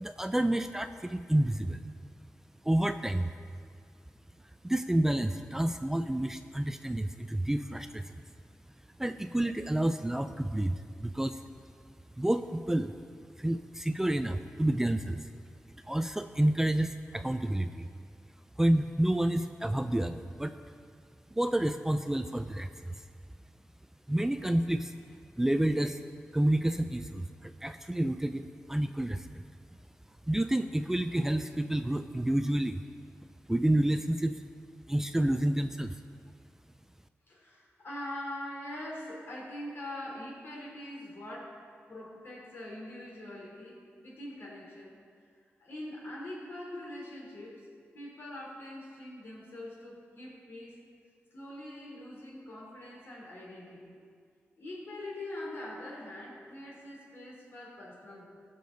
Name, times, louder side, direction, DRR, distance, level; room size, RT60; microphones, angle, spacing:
voice 1, 0.0-1.8 2.6-3.3 4.6-8.2 9.0-11.4 12.2-12.9 13.4-15.2 15.8-17.9 18.6-20.5 21.3-23.0 24.1-24.9 25.4-26.0 26.3-29.4 30.3-32.8 33.5-34.4 34.9-36.0, right 1 dB, 10° right, 9 dB, 0.3 m, -29 dB
voice 2, 37.3-45.0 45.6-50.8 51.3-54.0 54.6-58.3, left 1 dB, 65° left, -3 dB, 3.3 m, -43 dB
19.0 x 6.8 x 3.9 m, 2.1 s
wide cardioid pair, 115°, 5 cm